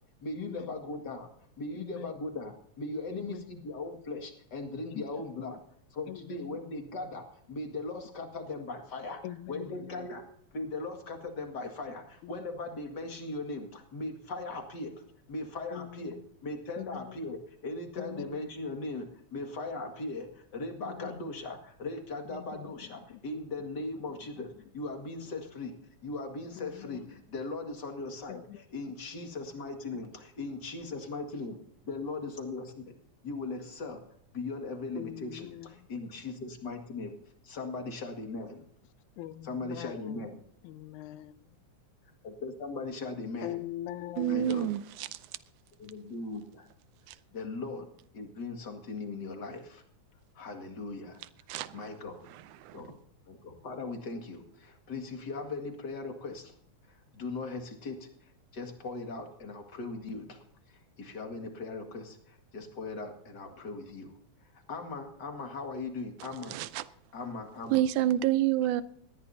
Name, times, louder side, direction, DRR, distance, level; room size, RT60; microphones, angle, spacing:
voice 1, 0.2-1.3 1.6-5.6 5.9-9.2 9.5-10.3 10.5-14.9 15.3-25.8 26.0-31.6 31.8-32.9 33.2-34.0 34.3-37.2 37.4-38.6 39.4-40.4 42.2-43.6 44.3-44.7 45.8-46.7 47.3-47.9 48.1-49.8 50.4-51.2 51.7-52.3 52.7-53.0 53.3-56.5 56.9-58.1 58.5-64.2 64.7-66.6 67.1-67.8, left 3 dB, 40° left, 2.3 m, -39 dB
voice 2, 1.8-2.1 3.1-3.4 5.0-5.1 5.4-5.6 6.1-6.6 9.2-10.1 15.7-16.1 16.8-17.0 18.0-18.4 20.8-21.2 22.3-22.6 26.6-27.1 28.3-28.6 35.0-35.7 39.2-40.1 40.6-41.4 43.4-44.7, left 14 dB, 85° left, 2.1 m, -42 dB
voice 3, 44.2-45.1 47.1-47.2 51.5-51.8 52.3-52.8 66.5-66.9 67.7-68.8, right 12 dB, 90° right, 2.2 m, -29 dB
19.5 x 14.5 x 2.8 m
omnidirectional pair, 3.4 m